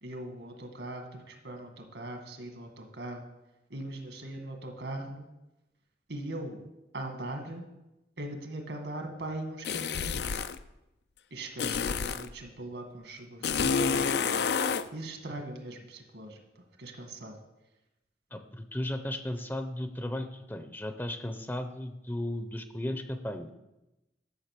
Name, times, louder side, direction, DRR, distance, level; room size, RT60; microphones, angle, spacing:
voice 1, 0.0-3.3 3.7-5.3 6.1-6.6 6.9-7.6 8.2-10.5 11.3-14.6 14.9-17.4, right 1 dB, 75° right, 4 dB, 2.0 m, -40 dB
sound 1, 9.6-10.6 11.6-12.3 13.4-14.9, left 6 dB, 65° left, 0.5 m, -29 dB
voice 2, 18.3-23.5, left 1 dB, 10° left, 8 dB, 0.6 m, -35 dB
12.0 x 6.4 x 6.7 m, 0.95 s
head